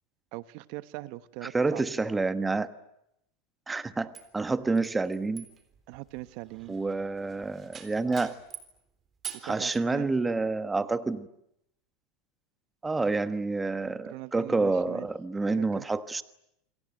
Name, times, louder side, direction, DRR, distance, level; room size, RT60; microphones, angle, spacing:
voice 1, 0.3-1.8 5.9-6.8 9.3-10.1 14.0-15.1 15.6-15.9, right 19 dB, 60° right, 14 dB, 1.1 m, -41 dB
voice 2, 1.5-2.7 3.7-5.4 6.7-8.3 9.4-11.3 12.8-16.2, right 3 dB, 10° right, 12 dB, 1.2 m, -28 dB
sound 1, 4.1-8.8 9.2-9.8, right 8 dB, 25° right, 3.8 m, -45 dB
28.0 x 23.0 x 9.1 m, 0.81 s
supercardioid pair, 140°, 0 cm